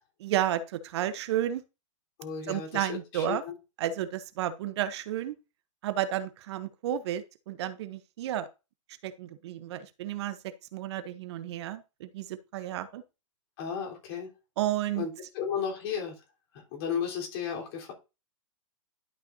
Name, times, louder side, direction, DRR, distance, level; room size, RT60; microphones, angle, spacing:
voice 1, 0.2-1.6 2.5-3.4 3.8-5.4 5.8-8.5 9.0-13.0 14.6-15.1, right 11 dB, 55° right, 13 dB, 0.8 m, -32 dB
voice 2, 2.2-3.5 13.6-14.3 15.0-15.1 15.3-16.2 16.5-17.9, left 7 dB, 45° left, -1 dB, 3.8 m, -34 dB
11.5 x 5.7 x 2.7 m, 0.28 s
hypercardioid pair, 145°, 17 cm